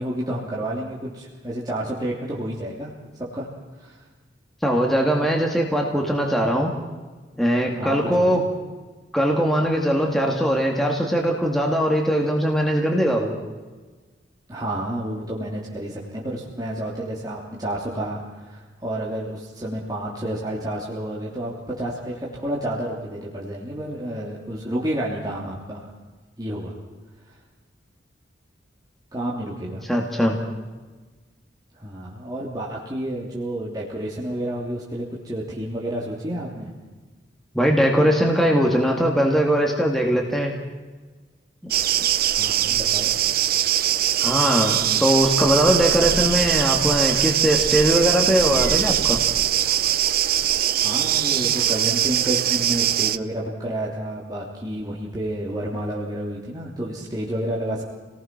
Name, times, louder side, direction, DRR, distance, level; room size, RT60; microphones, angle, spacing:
voice 1, 0.0-3.5 3.7-4.0 7.7-8.5 14.5-25.9 26.4-26.7 27.3-27.4 29.1-29.8 31.7-36.7 42.2-43.1 50.8-57.8, right 1 dB, 20° right, -5 dB, 3.1 m, -30 dB
voice 2, 4.6-6.7 7.4-8.4 9.1-13.4 29.9-30.4 37.5-40.5 44.2-49.2, equal, ahead, 0 dB, 2.3 m, -20 dB
sound 1, 41.7-53.2, right 11 dB, 50° right, 0.7 m, -22 dB
29.0 x 19.0 x 6.1 m, 1.3 s
head